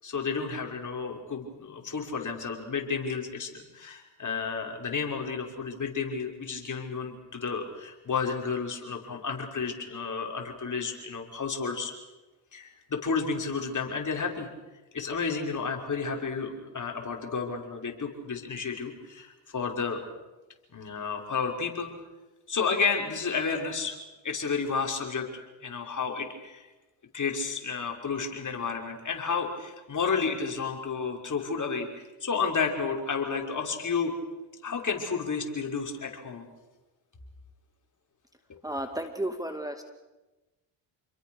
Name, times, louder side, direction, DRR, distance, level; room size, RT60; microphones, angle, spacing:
voice 1, 0.0-11.9 12.5-14.5 14.9-20.0 20.7-21.9 22.5-24.0 24.2-26.7 27.1-34.1 34.6-36.5 38.5-38.6, left 5 dB, 35° left, 2 dB, 6.1 m, -31 dB
voice 2, 38.6-39.8, right 1 dB, 5° right, 6 dB, 2.4 m, -33 dB
29.5 x 22.5 x 6.6 m, 1.1 s
supercardioid pair, 65°, 49 cm